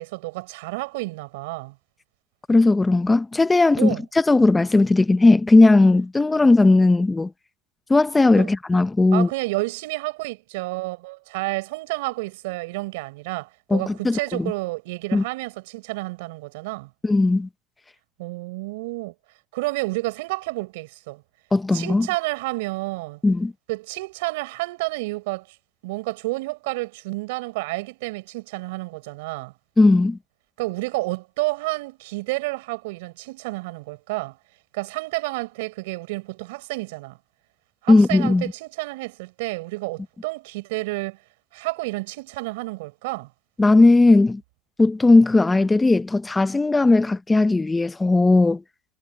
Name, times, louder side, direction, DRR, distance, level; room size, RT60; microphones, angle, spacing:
voice 1, 0.0-1.8 3.8-4.0 8.4-8.5 9.1-16.9 18.2-19.1 19.5-21.2 21.7-23.2 23.7-25.6 25.8-29.5 30.6-34.4 34.7-37.2 37.8-41.2 41.5-43.3, right 23 dB, 75° right, 6.2 m, -30 dB
voice 2, 2.5-7.3 7.9-9.3 13.7-14.5 15.1-15.2 17.0-17.5 21.5-22.1 23.2-23.5 29.8-30.2 37.9-38.4 43.6-44.4 44.8-48.6, left 2 dB, 10° left, 0.7 m, -17 dB
cardioid pair, 165°, 0 cm